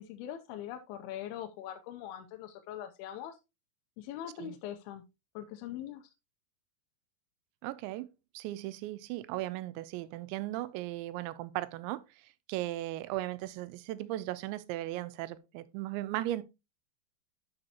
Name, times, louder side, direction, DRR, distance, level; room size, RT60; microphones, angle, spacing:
voice 1, 0.0-3.4 4.0-5.0 5.4-6.0, left 11 dB, 85° left, 2.3 m, -42 dB
voice 2, 7.6-8.1 8.3-12.0 12.5-16.4, right 15 dB, 90° right, 3.0 m, -37 dB
11.5 x 5.5 x 2.9 m
omnidirectional pair, 5.1 m